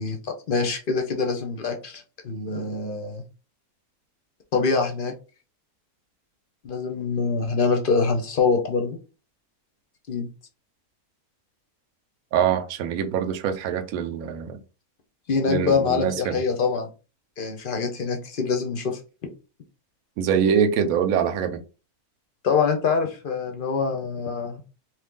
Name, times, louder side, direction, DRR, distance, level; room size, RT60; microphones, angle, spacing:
voice 1, 0.0-3.2 4.5-5.1 6.6-9.0 10.1-10.3 15.3-16.9 17.4-19.0 22.4-24.6, left 4 dB, 50° left, 0.6 m, -25 dB
voice 2, 12.3-14.6 15.5-16.4 20.2-21.6, right 8 dB, 75° right, 1.0 m, -24 dB
3.0 x 2.5 x 3.6 m
omnidirectional pair, 1.5 m